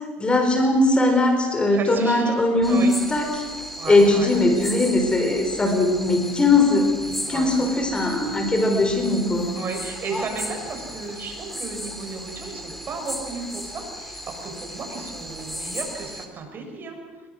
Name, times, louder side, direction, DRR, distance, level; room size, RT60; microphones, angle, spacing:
voice 1, 0.2-3.4 3.9-6.9 7.3-9.5, left 2 dB, 20° left, 5 dB, 4.5 m, -20 dB
voice 2, 1.7-2.4 2.7-3.0 3.8-4.3 7.3-7.5 9.5-17.0, right 4 dB, 40° right, 3 dB, 7.6 m, -34 dB
sound 1, 2.6-16.3, equal, 5° left, 3.4 m, -36 dB
26.5 x 23.0 x 6.5 m, 1.4 s
supercardioid pair, 95°, 6 cm